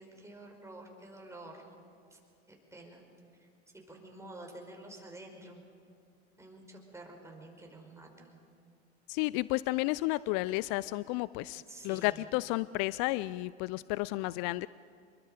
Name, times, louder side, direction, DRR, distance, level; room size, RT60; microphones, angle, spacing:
voice 1, 0.0-1.7 2.1-2.2 2.5-3.0 3.3-3.5 3.7-5.6 6.4-8.4 11.7-12.2, right 2 dB, 10° right, 1 dB, 5.3 m, -49 dB
voice 2, 9.1-14.7, left 20 dB, 50° left, 19 dB, 0.5 m, -32 dB
27.0 x 22.5 x 5.2 m, 2.3 s
hypercardioid pair, 85°, 34 cm